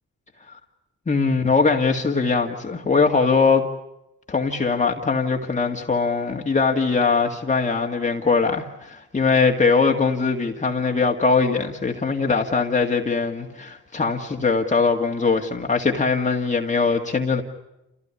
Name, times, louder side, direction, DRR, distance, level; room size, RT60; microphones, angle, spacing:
voice 1, 1.1-3.7 4.3-17.4, left 4 dB, 25° left, 2 dB, 2.0 m, -21 dB
29.0 x 16.0 x 9.9 m, 0.92 s
cardioid pair, 90°, 30 cm